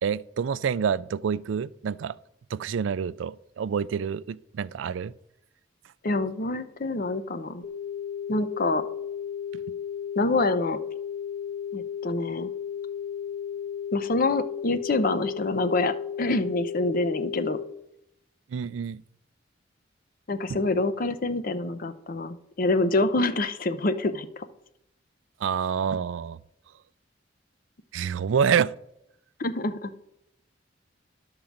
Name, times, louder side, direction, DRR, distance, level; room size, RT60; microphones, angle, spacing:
voice 1, 0.0-2.2 2.5-5.1 18.5-19.0 25.4-26.4 27.9-28.7, right 7 dB, 85° right, 0.3 m, -27 dB
voice 2, 6.0-7.6 8.3-8.8 10.2-10.8 11.7-12.5 13.9-17.6 20.3-24.4 29.4-29.9, left 2 dB, 50° left, 0.7 m, -26 dB
sound 1, 7.6-17.6, left 8 dB, 65° left, 1.0 m, -34 dB
11.5 x 3.8 x 7.1 m
head